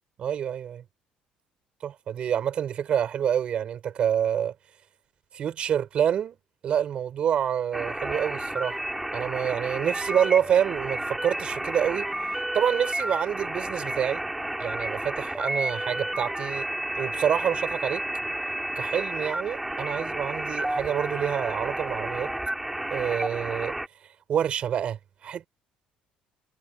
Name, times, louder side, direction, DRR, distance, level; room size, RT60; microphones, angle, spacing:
voice 1, 0.2-0.8 1.8-4.5 5.3-6.4 6.6-8.8 9.1-12.1 12.5-14.2 14.6-16.7 17.0-18.0 18.8-22.3 22.9-23.8 24.3-25.5, right 9 dB, 45° right, 5.7 m, -27 dB
sound 1, 7.7-23.9, right 1 dB, 5° right, 6.0 m, -31 dB
cardioid pair, 155°, 3 cm